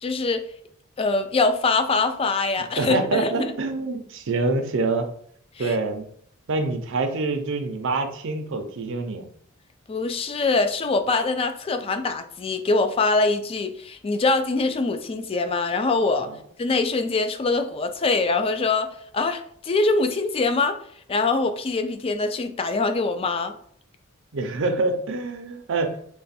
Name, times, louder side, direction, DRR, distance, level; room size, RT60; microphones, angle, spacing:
voice 1, 0.0-0.4 1.0-3.5 5.6-5.8 9.9-16.3 16.6-18.9 19.1-20.8 21.1-23.5, left 3 dB, 25° left, 8 dB, 0.3 m, -23 dB
voice 2, 2.8-5.1 5.6-6.0 6.5-9.2 16.3-16.4 24.3-26.0, right 3 dB, 65° right, 6 dB, 0.5 m, -26 dB
3.3 x 2.2 x 4.1 m, 0.62 s
head